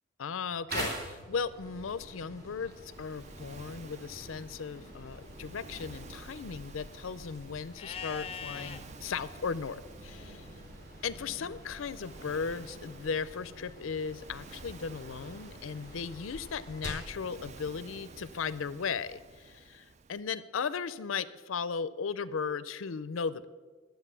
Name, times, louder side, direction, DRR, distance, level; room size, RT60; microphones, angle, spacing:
voice 1, 0.2-10.4 11.0-23.5, left 6 dB, 85° left, 16 dB, 0.5 m, -36 dB
sound 1, 0.7-17.2, right 1 dB, 50° right, 2.7 m, -45 dB
Waves surf, 2.7-20.2, right 4 dB, 35° right, 0.4 m, -52 dB
Livestock farm animals working animals, 7.8-8.8 11.6-12.6, left 6 dB, 30° left, 0.5 m, -43 dB
12.0 x 8.0 x 6.8 m, 1.4 s
head